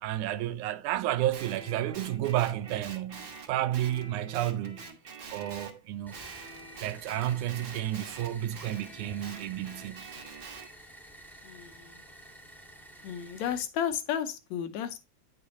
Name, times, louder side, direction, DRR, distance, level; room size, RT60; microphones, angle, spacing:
voice 1, 0.0-4.9 5.3-6.2 6.8-10.1, right 13 dB, 90° right, 2.2 m, -31 dB
Guitar, 1.3-5.8 6.1-10.7, right 4 dB, 45° right, 1.4 m, -46 dB
sound 1, 6.1-13.6, right 1 dB, ahead, 0.7 m, -51 dB
voice 2, 11.4-12.0 13.0-15.0, left 9 dB, 75° left, 2.0 m, -33 dB
9.6 x 6.9 x 2.7 m
omnidirectional pair, 3.4 m